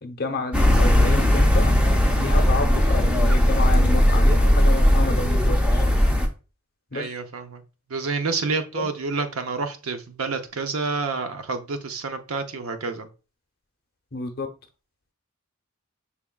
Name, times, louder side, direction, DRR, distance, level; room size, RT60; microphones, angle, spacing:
voice 1, 0.0-1.8 2.2-5.9 6.9-7.2 8.7-8.8 14.1-14.5, left 3 dB, 50° left, 0.7 m, -30 dB
sound 1, 0.5-6.3, left 1 dB, 5° right, 0.6 m, -18 dB
voice 2, 6.9-7.6 7.9-13.1, right 4 dB, 85° right, 0.6 m, -28 dB
5.9 x 3.5 x 2.3 m
head